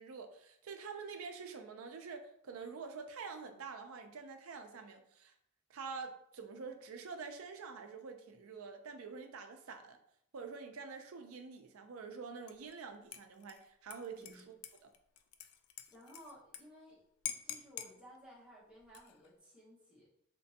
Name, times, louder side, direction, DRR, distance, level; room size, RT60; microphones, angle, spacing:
voice 1, 0.0-5.3 5.7-10.0 10.3-14.6 14.8-14.9, right 5 dB, 75° right, 6 dB, 0.5 m, -47 dB
Dishes pots and pans / Liquid, 12.5-12.8 13.1-16.6 16.9-17.0 17.3-17.9 18.8-19.3, left 10 dB, 85° left, 0.3 m, -46 dB
voice 2, 14.1-14.5 15.9-17.1 17.4-20.1, equal, 5° right, -7 dB, 0.9 m, -57 dB
3.4 x 2.9 x 2.7 m, 0.71 s
head